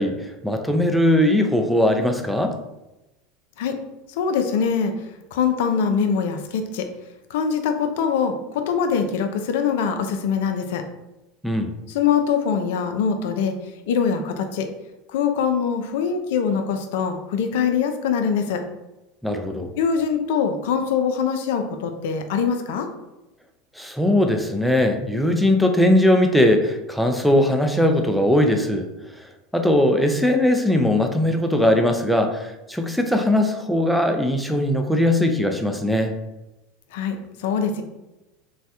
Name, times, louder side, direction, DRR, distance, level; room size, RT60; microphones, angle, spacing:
voice 1, 0.0-2.5 11.4-11.7 19.2-19.7 23.8-28.9 29.2-29.3 29.5-36.1, left 1 dB, ahead, 4 dB, 0.4 m, -20 dB
voice 2, 4.1-4.9 5.3-6.9 7.3-10.8 11.9-13.6 13.9-14.7 15.1-18.6 19.8-22.9 36.9-37.8, left 6 dB, 65° left, 7 dB, 0.4 m, -23 dB
3.1 x 2.2 x 2.7 m, 0.99 s
hypercardioid pair, 80°, 0 cm